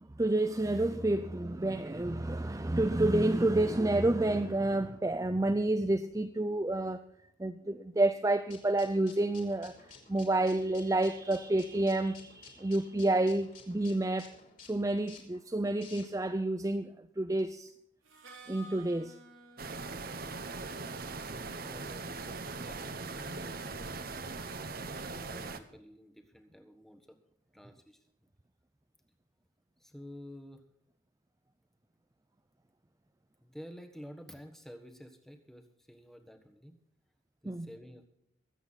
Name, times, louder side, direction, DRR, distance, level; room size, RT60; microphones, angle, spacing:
voice 1, 0.2-7.0 7.4-9.8 10.1-14.3 14.7-16.9 17.2-17.7 18.5-19.2 37.5-37.7, right 2 dB, 15° right, 0.5 m, -29 dB
sound 1, 8.5-16.4, left 5 dB, 40° left, 3.6 m, -54 dB
Harmonica, 18.0-23.8, right 1 dB, 80° right, 3.6 m, -56 dB
sound 2, 19.6-25.6, right 3 dB, 45° right, 1.0 m, -40 dB
voice 2, 21.6-24.1 24.8-27.2 27.5-28.0 29.8-30.7 33.4-36.8 37.4-38.1, equal, ahead, 1.4 m, -51 dB
23.5 x 8.3 x 4.1 m
head